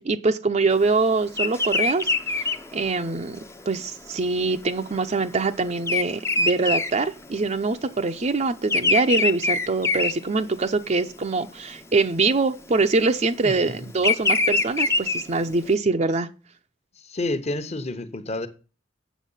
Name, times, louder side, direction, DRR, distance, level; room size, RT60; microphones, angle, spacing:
voice 1, 0.0-16.3, right 3 dB, 40° right, 0.6 m, -24 dB
Bird vocalization bird call bird song, 1.3-7.8 8.0-10.9 11.4-11.7 12.7-15.7, left 3 dB, 15° left, 0.6 m, -25 dB
voice 2, 17.1-18.5, left 2 dB, 35° left, 1.1 m, -29 dB
8.2 x 7.0 x 5.6 m
head